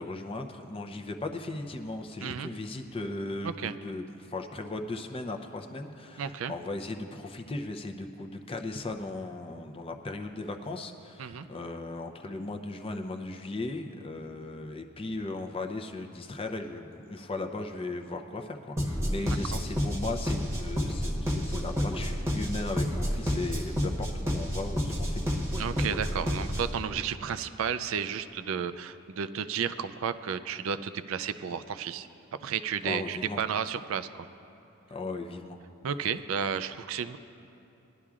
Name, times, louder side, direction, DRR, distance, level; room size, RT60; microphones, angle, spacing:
voice 1, 0.0-25.2 32.8-33.4 34.9-35.6, left 2 dB, 25° left, 5 dB, 0.6 m, -37 dB
voice 2, 6.2-6.5 11.2-11.5 19.2-19.4 25.6-32.1 32.4-34.3 35.8-37.2, right 7 dB, 65° right, 12 dB, 0.4 m, -32 dB
sound 1, 18.8-26.8, equal, 15° right, 1.0 m, -30 dB
20.0 x 11.5 x 2.4 m, 3.0 s
head